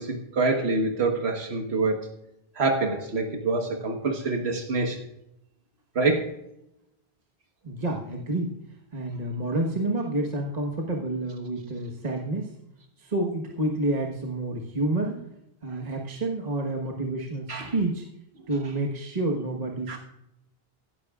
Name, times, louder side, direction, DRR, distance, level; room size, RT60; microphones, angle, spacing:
voice 1, 0.0-2.1 2.6-5.0 5.9-6.3 17.5-17.7 19.9-20.0, right 3 dB, 90° right, 3 dB, 1.6 m, -26 dB
voice 2, 7.6-8.6 8.9-12.5 13.0-15.2 15.6-18.0 18.5-20.0, right 2 dB, 40° right, 0 dB, 1.4 m, -29 dB
16.0 x 12.5 x 2.4 m, 0.82 s
omnidirectional pair, 1.0 m